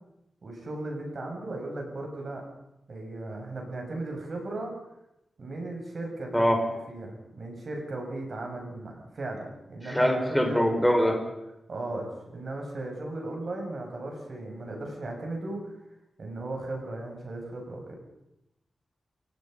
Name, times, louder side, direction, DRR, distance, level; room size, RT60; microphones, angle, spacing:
voice 1, 0.4-2.4 2.9-4.7 5.4-6.5 6.9-10.9 11.7-15.7 16.2-18.0, right 2 dB, 50° right, 1 dB, 7.4 m, -36 dB
voice 2, 6.3-6.6 9.9-11.2, equal, 5° left, 3 dB, 4.9 m, -23 dB
28.5 x 18.0 x 5.5 m, 0.86 s
wide cardioid pair, 105°, 0 cm